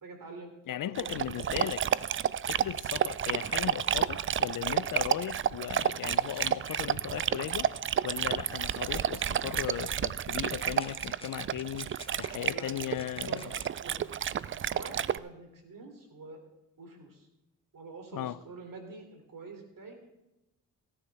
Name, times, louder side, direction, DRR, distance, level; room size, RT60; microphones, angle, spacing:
voice 1, 0.0-0.5 0.8-1.4 12.4-12.9 13.2-16.4 16.8-17.3 17.7-20.0, right 3 dB, 55° right, 3.2 m, -47 dB
voice 2, 0.7-1.9 2.5-11.9 12.2-13.5 18.1-18.4, left 12 dB, 55° left, 0.6 m, -37 dB
Dog, 1.0-15.2, right 9 dB, 35° right, 0.4 m, -31 dB
sound 1, 6.0-9.1 9.4-9.9 10.6-13.7, left 2 dB, 15° left, 1.3 m, -53 dB
17.0 x 9.8 x 3.5 m
supercardioid pair, 50°, 40 cm